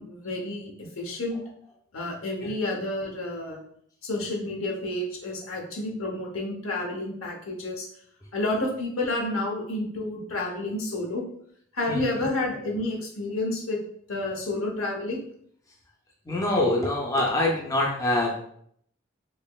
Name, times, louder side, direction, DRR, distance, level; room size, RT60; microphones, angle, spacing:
voice 1, 0.0-1.4 1.9-3.6 4.0-7.9 8.3-11.2 11.7-13.8 14.1-15.2, left 2 dB, 75° left, -1 dB, 0.9 m, -30 dB
voice 2, 16.3-18.3, left 1 dB, 15° left, -1 dB, 0.4 m, -24 dB
4.1 x 2.9 x 2.3 m, 0.66 s
head